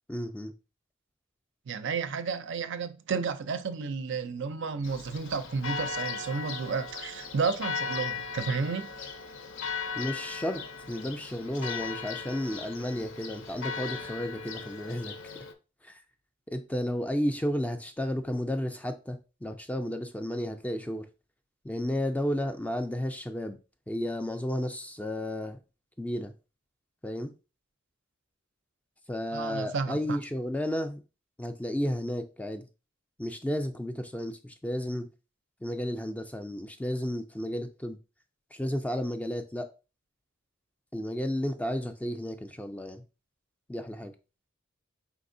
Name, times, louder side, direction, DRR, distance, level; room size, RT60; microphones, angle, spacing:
voice 1, 0.1-0.5 10.0-15.1 15.8-16.0 16.5-21.1 21.6-23.6 23.9-25.6 26.0-26.3 27.0-27.3 29.1-31.0 31.4-32.7 33.2-35.1 35.6-38.0 38.5-39.7 40.9-43.0 43.7-44.1, left 1 dB, 5° left, 0.3 m, -32 dB
voice 2, 1.7-8.9 29.3-30.2, right 5 dB, 60° right, 0.4 m, -32 dB
Church bell, 4.8-15.5, left 5 dB, 65° left, 0.5 m, -37 dB
4.8 x 3.6 x 2.6 m
head